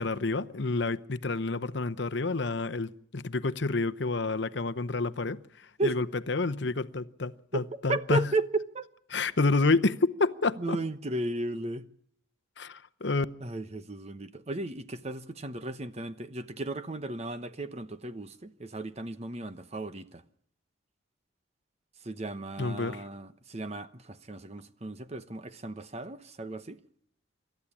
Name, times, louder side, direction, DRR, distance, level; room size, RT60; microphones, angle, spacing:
voice 1, 0.0-8.2 9.1-10.8 12.6-13.3 22.6-23.0, left 3 dB, 60° left, 0.8 m, -29 dB
voice 2, 7.9-8.9 10.6-11.8 13.4-20.2 22.0-26.8, right 2 dB, 30° right, 1.0 m, -35 dB
27.5 x 13.0 x 8.5 m
head